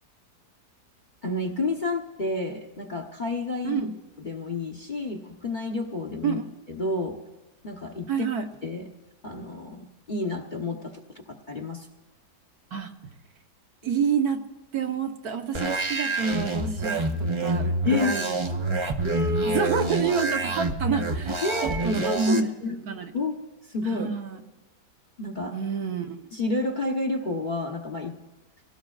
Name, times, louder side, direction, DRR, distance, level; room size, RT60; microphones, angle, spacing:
voice 1, 1.2-3.8 4.2-6.4 6.7-7.2 7.6-8.3 8.6-8.9 9.2-11.9 17.8-18.2 19.0-19.7 21.4-22.8 23.1-23.4 23.7-24.1 25.2-25.5 26.3-28.1, left 2 dB, 35° left, 3 dB, 1.0 m, -30 dB
voice 2, 3.6-3.9 6.2-6.4 8.1-8.4 12.7-12.9 13.8-14.4 14.7-18.4 18.8-19.0 19.4-23.1 23.8-24.4 25.5-26.1, right 6 dB, 65° right, 4 dB, 1.5 m, -28 dB
sound 1, 15.5-22.4, right 2 dB, 35° right, 0.5 m, -27 dB
26.5 x 18.0 x 2.4 m, 1.2 s
omnidirectional pair, 1.8 m